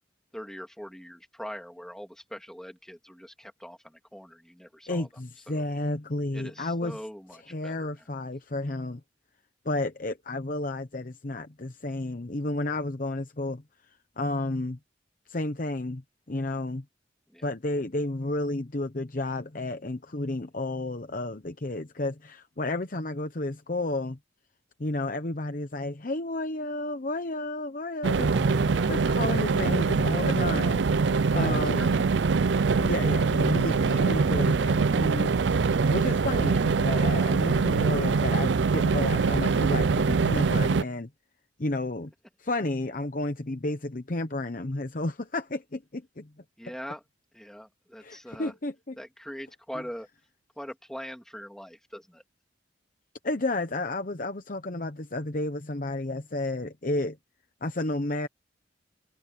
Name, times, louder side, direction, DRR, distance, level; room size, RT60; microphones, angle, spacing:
voice 1, 0.3-5.1 5.5-5.6 6.3-8.1 17.3-17.5 31.2-32.0 46.6-47.0 47.3-48.5 49.0-50.1 50.6-52.2, equal, 5° left, 2.9 m, -42 dB
voice 2, 4.9-7.0 7.5-9.0 9.6-14.8 15.3-16.8 17.4-24.2 24.8-30.8 31.3-32.1 32.8-35.3 35.9-41.1 41.6-42.1 42.4-46.3 48.0-49.0 53.2-57.2 57.6-58.3, left 2 dB, 45° left, 0.9 m, -32 dB
sound 1, 28.0-40.8, right 4 dB, 70° right, 0.5 m, -23 dB
sound 2, 28.3-31.7 32.0-32.1, right 1 dB, 25° right, 1.2 m, -39 dB
head